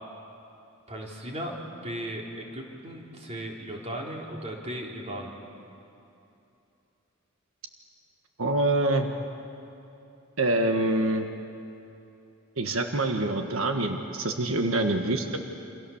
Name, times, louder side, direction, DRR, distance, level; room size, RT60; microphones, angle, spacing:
voice 1, 0.9-1.6 1.8-5.4, right 1 dB, 30° right, -1 dB, 3.7 m, -36 dB
voice 2, 8.4-9.1 10.4-11.3 12.6-15.4, right 2 dB, 90° right, 5 dB, 1.6 m, -25 dB
28.0 x 26.5 x 7.3 m, 2.8 s
head